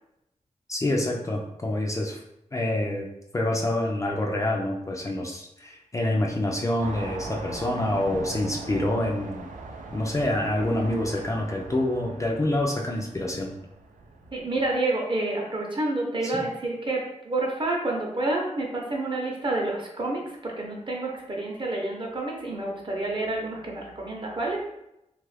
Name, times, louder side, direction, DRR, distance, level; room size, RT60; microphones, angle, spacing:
voice 1, 0.7-2.2 2.5-3.1 3.3-9.5 9.9-13.5 16.2-16.4, left 1 dB, 25° left, 0 dB, 0.4 m, -27 dB
sound 1, 6.8-14.7, right 3 dB, 85° right, 0.4 m, -40 dB
voice 2, 14.3-24.6, right 2 dB, 40° right, -1 dB, 0.7 m, -29 dB
3.1 x 2.4 x 3.2 m, 0.84 s
wide cardioid pair, 125°, 13 cm